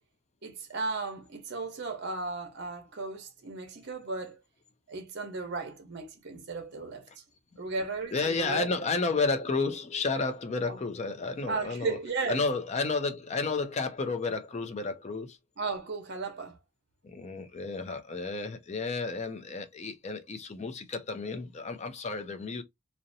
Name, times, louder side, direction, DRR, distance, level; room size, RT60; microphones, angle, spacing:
voice 1, 0.4-4.4 4.9-7.0 7.6-8.7 10.6-10.8 11.5-12.4 15.6-16.6, right 3 dB, 50° right, 0.8 m, -35 dB
voice 2, 8.1-12.0 12.3-15.4 17.0-22.6, left 3 dB, 30° left, 0.4 m, -31 dB
2.7 x 2.0 x 2.6 m
head